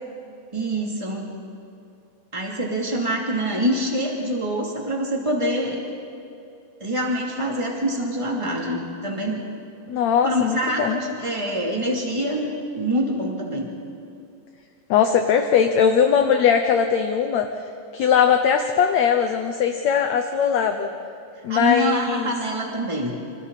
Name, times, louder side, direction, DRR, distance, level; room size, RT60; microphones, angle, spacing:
voice 1, 0.5-1.4 2.3-5.8 6.8-9.4 10.2-12.5 12.7-13.7 21.5-23.2, equal, 10° right, -1 dB, 2.5 m, -25 dB
voice 2, 9.9-11.0 14.9-17.5 17.9-20.9 21.4-22.3, left 7 dB, 70° left, 6 dB, 1.8 m, -20 dB
28.0 x 26.5 x 4.2 m, 2.6 s
omnidirectional pair, 4.0 m